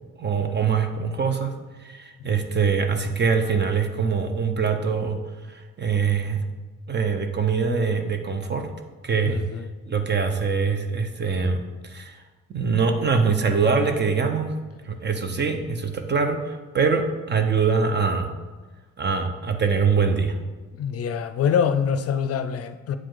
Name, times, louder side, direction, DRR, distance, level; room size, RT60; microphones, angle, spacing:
voice 1, 0.2-5.2 5.5-6.4 6.9-8.7 9.0-9.4 9.9-12.2 12.5-14.5 14.8-18.3 19.0-20.4, right 5 dB, 35° right, 0.7 m, -23 dB
voice 2, 9.3-9.7 20.8-23.0, left 7 dB, 55° left, 0.5 m, -24 dB
7.8 x 4.9 x 3.8 m
cardioid pair, 90°, 30 cm